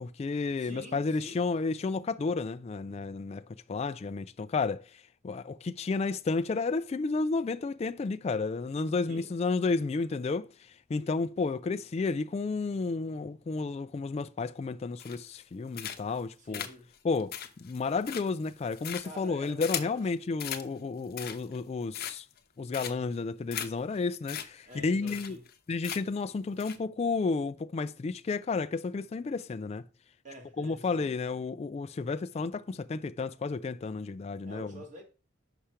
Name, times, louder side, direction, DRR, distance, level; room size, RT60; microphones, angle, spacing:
voice 1, 0.0-10.5 10.9-16.7 17.0-22.3 22.6-25.4 25.7-29.8 30.6-34.8, left 4 dB, 30° left, 0.3 m, -32 dB
voice 2, 0.6-1.5 9.1-9.3 16.4-16.9 19.0-20.0 24.6-25.5 30.2-31.1 34.4-35.0, equal, 40° right, 2.0 m, -47 dB
sound 1, 15.0-15.4 15.7-16.2 16.5-20.0 20.4-20.7 21.0-21.6 21.9-22.4 22.7-23.1 23.5-23.7 24.0-24.1 24.3-24.5 24.7-24.8 25.1-25.5 25.8-26.2 26.6-26.8, left 10 dB, 50° left, 0.7 m, -38 dB
5.8 x 5.7 x 5.0 m
head